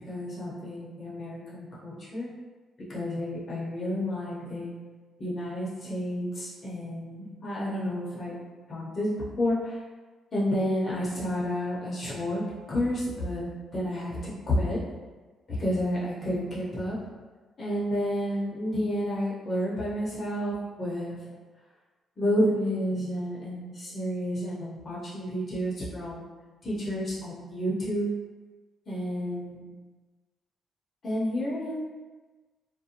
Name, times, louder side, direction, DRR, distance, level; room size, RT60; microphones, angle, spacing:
voice 1, 0.0-2.3 2.9-4.7 5.2-8.4 8.7-9.8 10.3-12.4 12.7-14.8 15.5-17.0 17.6-21.3 22.2-26.2 26.6-28.1 28.9-29.7 31.0-31.8, equal, 40° left, -7 dB, 0.8 m, -30 dB
2.5 x 2.1 x 2.8 m, 1.3 s
cardioid pair, 90°, 0 cm